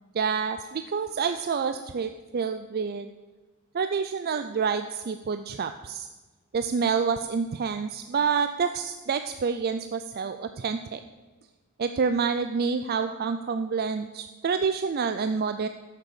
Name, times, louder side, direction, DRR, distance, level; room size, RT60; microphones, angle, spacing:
voice 1, 0.1-3.1 3.7-6.1 6.5-11.0 11.8-15.7, right 5 dB, 45° right, 9 dB, 0.4 m, -28 dB
14.0 x 6.6 x 6.9 m, 1.3 s
head